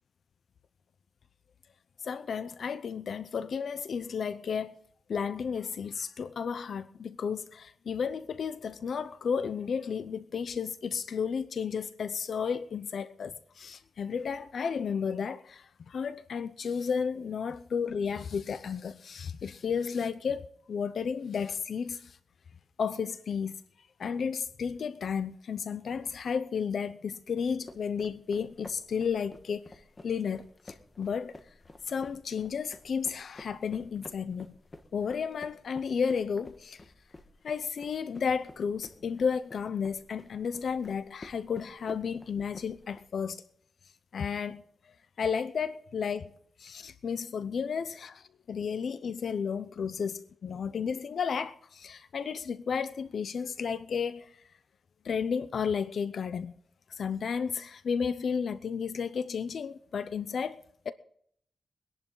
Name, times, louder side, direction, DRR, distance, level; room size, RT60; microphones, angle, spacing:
voice 1, 2.0-4.7 5.1-22.2 22.8-23.5 24.0-31.4 31.9-34.5 34.9-36.8 37.4-43.4 44.1-46.3 46.6-54.4 55.0-56.5 56.9-60.9, left 6 dB, 70° left, 0.6 m, -33 dB
sound 1, 27.4-43.0, left 2 dB, 25° left, 1.5 m, -51 dB
23.0 x 11.0 x 3.9 m
wide cardioid pair, 140°, 0 cm